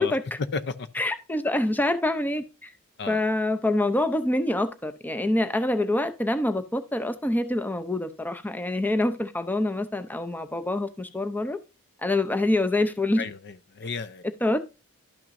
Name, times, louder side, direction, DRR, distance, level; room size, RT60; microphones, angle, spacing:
voice 1, 0.0-0.4 0.9-2.7 3.1-11.6 12.0-13.3 14.4-14.6, left 1 dB, 10° left, 0.6 m, -26 dB
voice 2, 0.5-0.9 3.0-3.2 13.2-14.2, left 4 dB, 50° left, 0.6 m, -33 dB
12.0 x 6.0 x 2.6 m
head